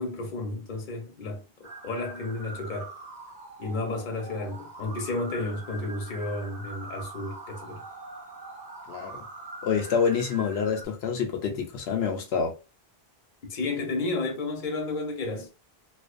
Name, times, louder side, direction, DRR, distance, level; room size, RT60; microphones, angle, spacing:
voice 1, 0.0-2.9 3.6-7.8 13.5-15.5, left 2 dB, 55° left, 0.8 m, -32 dB
sound 1, 1.6-10.9, right 2 dB, 50° right, 0.8 m, -43 dB
voice 2, 8.9-9.2 9.6-12.6, left 6 dB, 85° left, 0.8 m, -27 dB
2.4 x 2.1 x 2.4 m
omnidirectional pair, 1.0 m